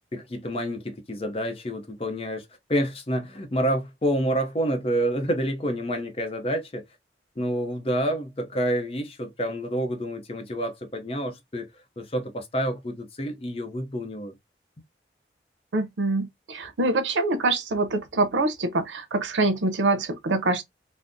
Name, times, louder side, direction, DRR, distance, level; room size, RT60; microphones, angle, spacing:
voice 1, 0.1-6.9 7.4-11.7 12.0-14.4, equal, 30° left, 0.5 m, -28 dB
voice 2, 15.7-20.6, right 2 dB, 90° right, 0.6 m, -25 dB
3.5 x 2.0 x 2.5 m
head